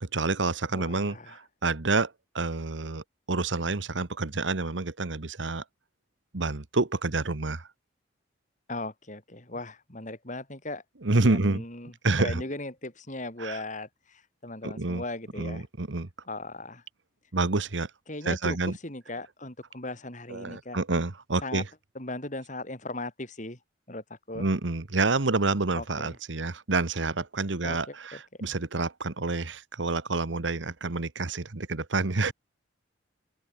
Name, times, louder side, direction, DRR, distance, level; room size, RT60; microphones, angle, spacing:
voice 1, 0.0-5.6 6.3-7.7 11.0-11.6 12.0-12.4 13.4-13.6 14.6-15.0 15.4-16.1 17.3-17.9 18.2-18.8 20.3-21.7 24.3-32.3, right 3 dB, 85° right, 1.3 m, -28 dB
voice 2, 0.7-1.4 8.7-10.8 11.2-11.9 12.2-15.6 16.3-16.8 18.1-20.8 21.4-21.6 21.9-23.6 23.9-24.5 25.7-26.1 27.6-28.2, left 2 dB, 40° left, 6.5 m, -38 dB
open air
head